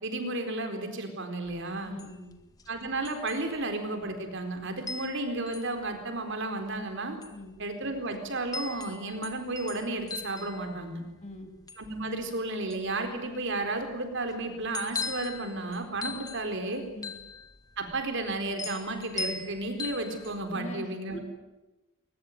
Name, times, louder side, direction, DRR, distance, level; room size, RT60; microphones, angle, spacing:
voice 1, 0.0-1.9 2.7-7.2 7.6-11.0 11.8-16.8 17.8-21.2, right 2 dB, 60° right, 6 dB, 4.3 m, -33 dB
sound 1, 1.4-20.6, left 4 dB, 20° left, 1.8 m, -41 dB
voice 2, 1.8-2.4 7.3-7.5 11.2-11.5 16.9-17.1 20.5-21.2, left 1 dB, 35° left, 5 dB, 3.0 m, -42 dB
22.0 x 21.0 x 9.5 m, 1.1 s
head